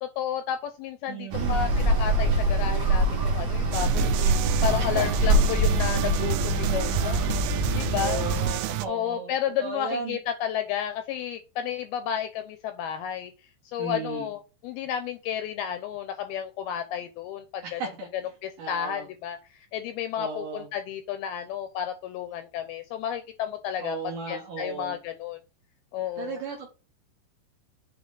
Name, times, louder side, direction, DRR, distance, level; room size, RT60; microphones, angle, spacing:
voice 1, 0.0-7.2 7.8-8.2 8.9-13.3 13.7-17.8 18.4-19.4 19.7-24.0 24.3-25.4 25.9-26.4, left 9 dB, 80° left, 9 dB, 2.2 m, -32 dB
voice 2, 1.1-1.7 4.8-5.2 8.0-9.3 9.6-10.2 13.8-14.3 17.6-18.1 18.6-19.1 20.2-20.7 23.8-25.0 26.2-26.7, right 5 dB, 70° right, 2 dB, 2.0 m, -35 dB
sound 1, 1.3-8.5, right 1 dB, 50° right, 2.1 m, -24 dB
sound 2, 3.7-8.9, right 13 dB, 85° right, 2.8 m, -30 dB
8.3 x 4.7 x 3.9 m, 0.33 s
omnidirectional pair, 5.0 m